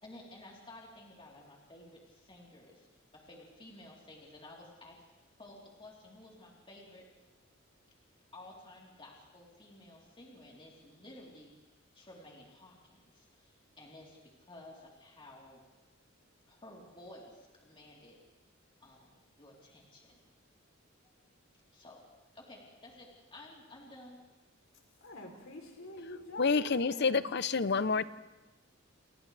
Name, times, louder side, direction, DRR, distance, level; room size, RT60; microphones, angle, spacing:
voice 1, 0.0-2.9 3.1-5.0 5.4-7.1 8.3-11.5 11.9-15.6 16.5-18.2 18.8-20.1 21.7-22.0 22.3-24.2, left 1 dB, 25° left, -4 dB, 3.8 m, -53 dB
voice 2, 25.0-27.3, left 1 dB, 75° left, 1 dB, 3.5 m, -46 dB
voice 3, 26.4-28.0, left 4 dB, 55° left, 14 dB, 0.7 m, -28 dB
30.0 x 29.0 x 3.4 m, 1.1 s
head